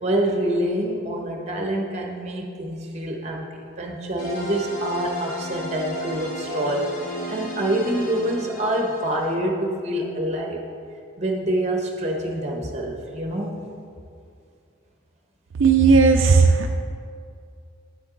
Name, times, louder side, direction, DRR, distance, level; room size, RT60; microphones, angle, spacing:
voice 1, 0.0-3.5 3.8-6.9 7.3-10.6 11.2-13.6, right 1 dB, 35° right, 1 dB, 1.1 m, -26 dB
sound 1, 4.2-9.3, equal, 40° left, 1.2 m, -34 dB
voice 2, 15.6-16.7, right 4 dB, 75° right, 3 dB, 0.5 m, -15 dB
9.2 x 8.0 x 3.9 m, 2.4 s
head